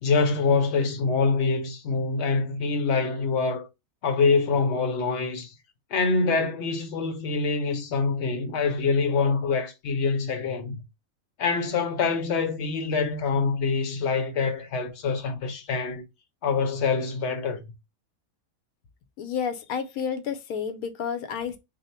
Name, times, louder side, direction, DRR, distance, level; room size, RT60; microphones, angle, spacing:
voice 1, 0.0-3.7 4.0-5.5 5.9-10.8 11.4-16.0 16.4-17.7, left 4 dB, 60° left, 0.9 m, -25 dB
voice 2, 19.2-21.6, left 7 dB, 85° left, 1.1 m, -30 dB
3.6 x 2.1 x 4.2 m
omnidirectional pair, 1.5 m